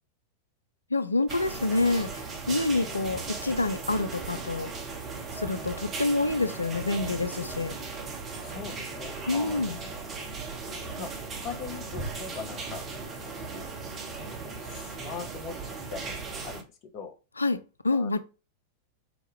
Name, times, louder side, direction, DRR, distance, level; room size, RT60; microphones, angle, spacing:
voice 1, 0.9-4.7 5.3-7.7 9.3-9.8 17.4-17.6 17.8-18.2, left 2 dB, 80° left, 0.4 m, -27 dB
sound 1, 1.3-16.6, right 4 dB, 30° right, 0.9 m, -37 dB
voice 2, 8.4-9.9 11.0-11.1 11.4-12.8 13.2-13.7 14.1-16.1 16.4-16.6 16.9-17.1 17.9-18.2, left 6 dB, 35° left, 0.8 m, -41 dB
4.7 x 2.2 x 3.5 m
figure-of-eight pair, 90°, 0 cm